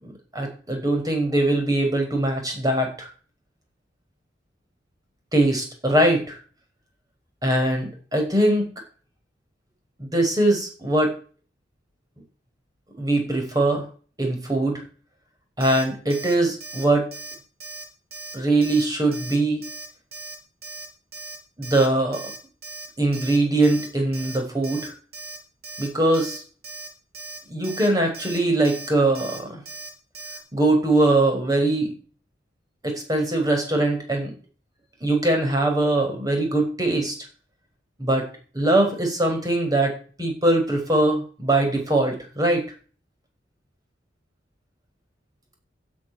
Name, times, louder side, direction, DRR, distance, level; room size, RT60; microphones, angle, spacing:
voice 1, 0.0-3.1 5.3-6.4 7.4-8.7 10.0-11.1 13.0-13.9 14.2-14.8 15.6-17.1 18.3-19.6 21.6-22.3 23.0-24.9 25.8-26.4 27.5-29.6 30.5-31.9 32.8-34.3 35.0-37.1 38.0-38.3 38.5-42.6, right 2 dB, 20° right, 3 dB, 5.4 m, -22 dB
Alarm, 15.6-15.8 16.1-16.3 16.6-16.8 17.1-17.4 17.6-17.8 18.1-18.3 18.6-18.9 19.1-19.4 19.6-19.9 20.1-20.4 20.6-20.9 21.1-21.4 21.6-21.9 22.1-22.4 22.6-22.9 23.1-23.4 23.6-23.9 24.1-24.4 24.6-24.9 25.1-25.4 25.6-25.9 26.1-26.4 26.6-26.9 27.1-27.4 27.6-27.9 28.1-28.4 28.6-28.9 29.2-29.4 29.7-29.9 30.1-30.4, right 2 dB, 55° right, 5.0 m, -38 dB
12.5 x 7.5 x 9.5 m, 0.39 s
head